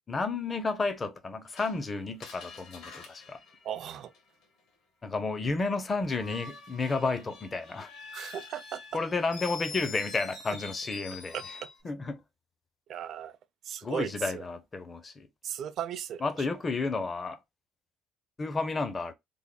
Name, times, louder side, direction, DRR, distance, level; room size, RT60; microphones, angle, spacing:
voice 1, 0.1-3.4 5.0-7.9 8.9-11.4 11.8-12.2 13.8-15.3 16.2-17.4 18.4-19.1, left 3 dB, 20° left, 0.5 m, -31 dB
Screech, 1.6-4.4 6.1-11.8, left 4 dB, 65° left, 1.3 m, -46 dB
voice 2, 3.6-4.1 8.1-8.8 11.3-11.4 12.9-13.4 13.6-14.4 15.4-16.2, right 9 dB, 45° right, 0.4 m, -36 dB
3.4 x 2.1 x 3.7 m
cardioid pair, 155°, 0 cm